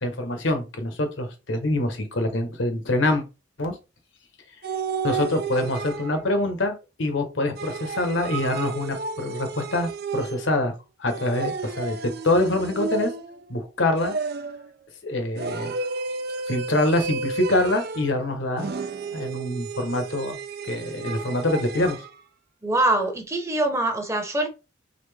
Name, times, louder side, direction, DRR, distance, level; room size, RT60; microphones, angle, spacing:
voice 1, 0.0-3.2 3.6-3.8 5.0-10.7 11.0-13.1 13.5-14.2 15.0-15.7 16.5-18.7 19.1-20.4 20.6-22.0, left 1 dB, 70° left, 1.2 m, -25 dB
sound 1, 4.6-6.4 7.6-10.6 11.1-13.4 14.0-14.7 15.4-18.2 18.6-22.1, right 4 dB, 50° right, 0.5 m, -32 dB
voice 2, 22.6-24.5, right 2 dB, 15° right, 0.9 m, -23 dB
4.2 x 3.7 x 3.4 m
head